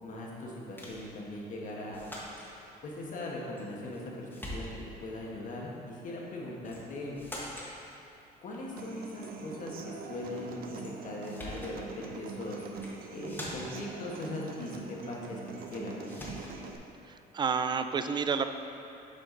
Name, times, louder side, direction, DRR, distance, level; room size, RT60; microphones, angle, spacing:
voice 1, 0.0-2.0 2.8-4.7 5.0-7.2 8.4-12.6 13.1-15.4 15.7-16.3, left 2 dB, 50° left, -3 dB, 1.4 m, -40 dB
sound 1, 0.8-1.1 1.9-2.5 3.6-4.0 4.3-5.0 6.6-6.9 7.2-7.7 10.8-10.9 11.2-11.8 12.7-13.0 13.3-13.9 15.6-15.7 16.1-16.6, left 1 dB, 10° left, 1.3 m, -43 dB
Human voice / Acoustic guitar, 8.8-16.8, right 4 dB, 60° right, 0.6 m, -43 dB
voice 2, 17.1-18.4, right 5 dB, 25° right, 9 dB, 0.3 m, -30 dB
7.7 x 5.0 x 3.9 m, 2.9 s
cardioid pair, 110°, 17 cm